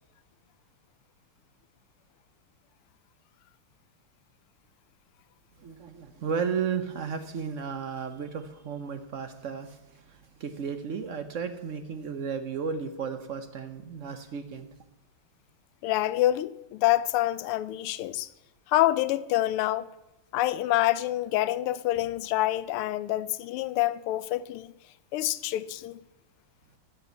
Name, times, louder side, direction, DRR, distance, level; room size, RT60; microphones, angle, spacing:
voice 1, 5.6-14.7, right 6 dB, 70° right, 0.7 m, -34 dB
voice 2, 15.8-18.3 18.7-19.9 20.3-24.7 25.1-26.0, left 15 dB, 85° left, 1.5 m, -27 dB
12.5 x 7.0 x 8.1 m
omnidirectional pair, 2.4 m